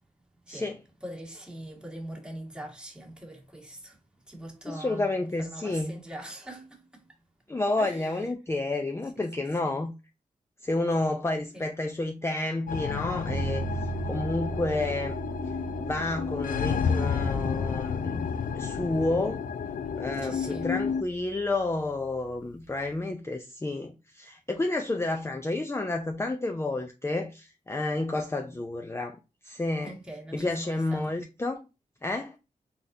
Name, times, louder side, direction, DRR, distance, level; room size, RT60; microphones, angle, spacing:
voice 1, 1.0-4.0 4.3-7.2 7.8-8.3 9.2-9.3 9.6-9.8 11.5-11.7 20.2-20.8 29.8-31.1, right 1 dB, 5° right, 1.7 m, -42 dB
voice 2, 4.7-6.0 7.5-9.9 10.6-15.2 15.8-18.3 18.5-19.4 20.0-29.9 30.3-31.6 32.0-32.4, left 2 dB, 20° left, 0.5 m, -30 dB
sound 1, 12.7-21.0, left 6 dB, 85° left, 0.5 m, -31 dB
sound 2, 13.3-23.0, right 4 dB, 90° right, 0.5 m, -39 dB
4.0 x 3.7 x 2.7 m
wide cardioid pair, 85°, 14 cm